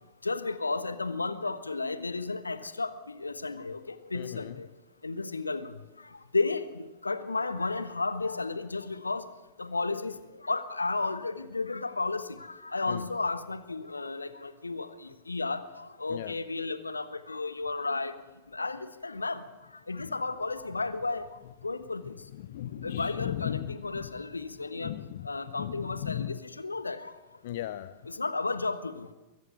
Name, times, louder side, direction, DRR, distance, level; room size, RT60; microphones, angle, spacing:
voice 1, 0.2-4.7 5.0-5.7 6.3-9.3 9.6-10.1 10.4-18.1 18.5-19.4 19.9-21.3 21.6-22.2 22.8-24.9 25.2-27.1 28.1-29.1, left 3 dB, 80° left, 13 dB, 1.3 m, -33 dB
voice 2, 4.1-4.6 12.9-13.0 16.1-16.3 20.0-20.1 22.4-24.1 24.8-25.3 25.6-26.4 27.4-28.0, left 12 dB, 55° left, 15 dB, 0.7 m, -36 dB
22.5 x 15.0 x 9.2 m, 1.1 s
figure-of-eight pair, 90°, 0 cm